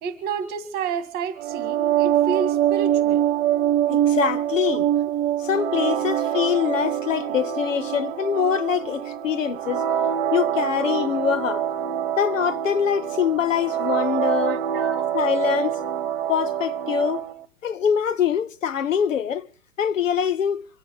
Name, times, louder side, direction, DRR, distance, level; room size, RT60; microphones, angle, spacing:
voice 1, 0.0-3.2 14.4-15.1, right 6 dB, 25° right, 2.1 m, -30 dB
sound 1, 1.4-17.3, right 11 dB, 45° right, 1.3 m, -24 dB
voice 2, 3.9-4.9 5.4-9.8 10.3-11.6 12.2-14.6 15.1-15.7 16.3-17.2 17.6-19.5 19.8-20.6, left 8 dB, 70° left, 0.9 m, -24 dB
25.5 x 9.0 x 5.5 m
figure-of-eight pair, 120°, 40 cm